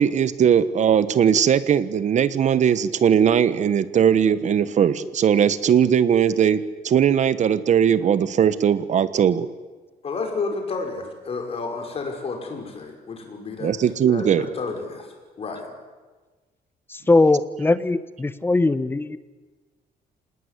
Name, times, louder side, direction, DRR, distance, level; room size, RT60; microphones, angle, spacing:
voice 1, 0.0-9.5 13.6-14.5, right 8 dB, 50° right, 15 dB, 1.3 m, -19 dB
voice 2, 10.0-13.7 14.1-15.7, left 4 dB, 40° left, 4 dB, 5.6 m, -31 dB
voice 3, 16.9-19.2, left 2 dB, 15° left, 14 dB, 1.0 m, -20 dB
26.0 x 19.5 x 9.9 m, 1.3 s
cardioid pair, 150°, 16 cm